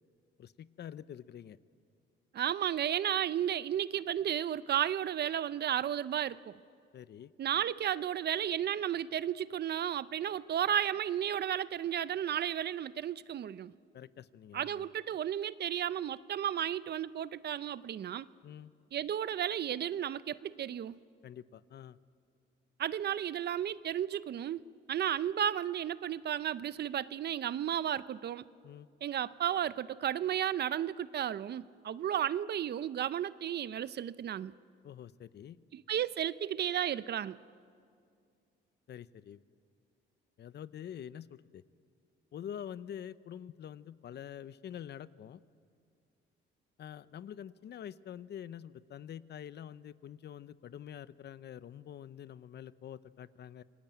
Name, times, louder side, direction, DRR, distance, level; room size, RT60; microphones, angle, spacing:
voice 1, 0.4-1.6 6.9-7.3 13.9-14.9 18.4-18.7 21.2-22.0 28.6-28.9 34.8-35.6 38.9-39.4 40.4-41.6 42.3-45.4 46.8-53.6, left 9 dB, 60° left, 17 dB, 0.7 m, -46 dB
voice 2, 2.3-6.6 7.4-13.7 14.5-18.3 18.9-21.0 22.8-24.6 24.9-28.4 29.0-34.5 35.7-37.4, right 10 dB, 55° right, 17 dB, 0.6 m, -33 dB
26.5 x 19.0 x 9.2 m, 2.3 s
cardioid pair, 90°, 20 cm